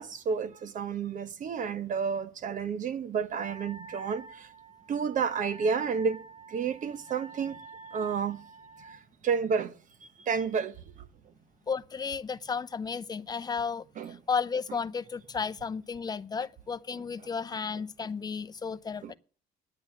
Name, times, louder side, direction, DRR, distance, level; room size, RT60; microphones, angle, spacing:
voice 1, 0.0-4.2 4.9-6.2 6.5-7.6 7.9-8.4 9.2-9.7 10.3-10.7 14.0-14.2 19.0-19.1, right 6 dB, 50° right, 1.1 m, -30 dB
Wind instrument woodwind instrument, 3.4-9.0, right 3 dB, 20° right, 5.3 m, -48 dB
voice 2, 11.7-19.2, left 5 dB, 25° left, 0.6 m, -33 dB
9.7 x 9.3 x 6.3 m
cardioid pair, 110°, 17 cm